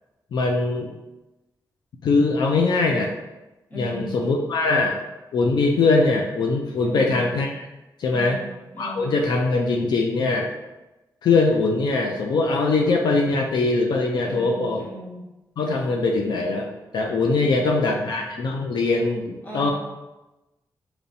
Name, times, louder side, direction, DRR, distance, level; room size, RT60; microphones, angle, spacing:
voice 1, 0.3-0.9 2.0-3.1 3.7-5.0 5.3-7.7 8.0-8.4 8.8-10.5 11.2-14.8 15.6-19.7, left 3 dB, 80° left, 1 dB, 0.5 m, -22 dB
voice 2, 3.7-4.1 6.8-7.2 8.1-8.5 8.7-9.1 14.2-15.2 17.3-18.0 19.4-19.7, equal, 25° left, -5 dB, 1.2 m, -37 dB
6.7 x 3.0 x 2.7 m, 1.0 s
wide cardioid pair, 160°, 7 cm